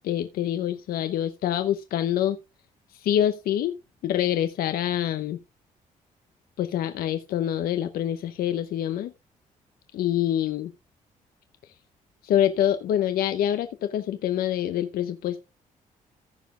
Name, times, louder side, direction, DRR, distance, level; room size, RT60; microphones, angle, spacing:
voice 1, 0.0-2.4 2.9-3.8 4.0-5.4 6.6-9.1 9.9-10.7 12.2-15.4, left 11 dB, 85° left, 9 dB, 0.8 m, -26 dB
15.0 x 5.1 x 3.7 m, 0.26 s
cardioid pair, 65°, 15 cm